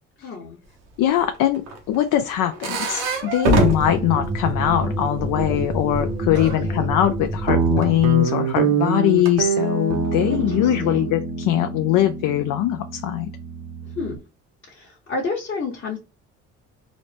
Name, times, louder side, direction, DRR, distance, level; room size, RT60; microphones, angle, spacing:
voice 1, 0.2-0.6 6.4-6.9 10.3-11.2 14.0-14.2 14.7-16.0, left 4 dB, 35° left, 1.1 m, -30 dB
voice 2, 1.0-1.6 1.9-13.3, left 12 dB, 65° left, 0.5 m, -21 dB
sound 1, 1.2-5.0 5.3-6.6 7.8-7.9 9.0-9.3 9.9-10.8, right 3 dB, 90° right, 0.9 m, -26 dB
sound 2, 3.6-8.2, right 1 dB, 20° right, 0.6 m, -28 dB
Guitar, 7.5-14.2, right 5 dB, 65° right, 0.9 m, -25 dB
3.9 x 2.0 x 3.3 m
supercardioid pair, 60°, 35 cm